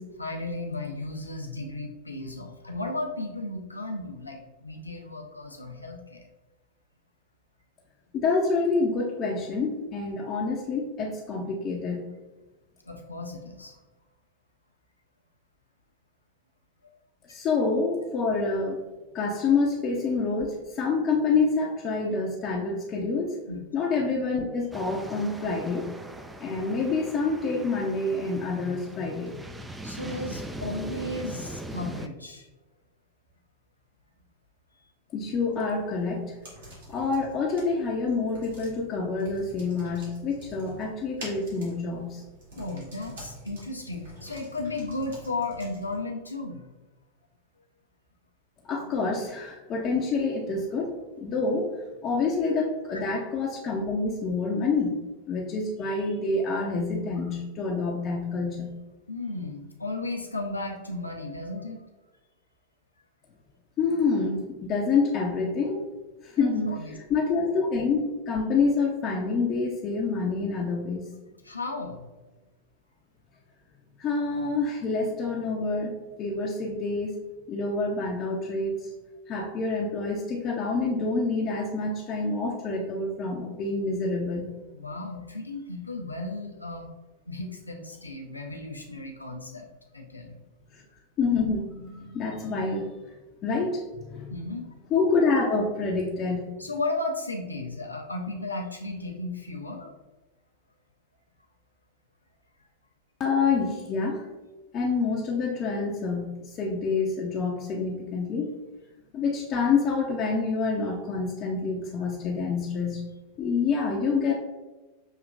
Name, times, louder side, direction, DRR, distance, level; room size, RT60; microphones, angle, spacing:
voice 1, 0.2-6.2 12.8-13.8 23.5-23.6 29.8-32.5 42.5-46.6 52.9-53.0 59.1-61.8 66.4-66.9 71.4-72.0 84.7-86.9 87.3-89.7 89.9-90.4 94.3-94.7 96.6-99.9, left 2 dB, 85° left, 1 dB, 0.6 m, -35 dB
voice 2, 8.1-12.1 17.3-18.9 19.1-23.4 23.7-25.9 26.4-29.4 35.1-36.3 36.9-42.2 48.6-51.7 52.0-58.8 63.8-65.8 66.2-71.1 74.0-77.2 77.5-78.9 79.3-84.5 90.7-90.8 91.2-92.9 93.4-94.3 94.9-96.5 103.2-104.2 104.7-108.5 109.1-113.0 113.4-114.3, left 4 dB, 35° left, -2 dB, 0.6 m, -27 dB
sound 1, 24.7-32.1, right 1 dB, 10° right, 0.3 m, -40 dB
sound 2, 35.2-46.0, right 1 dB, 65° right, 1.5 m, -47 dB
6.4 x 2.9 x 2.4 m, 1.2 s
figure-of-eight pair, 90°, 0 cm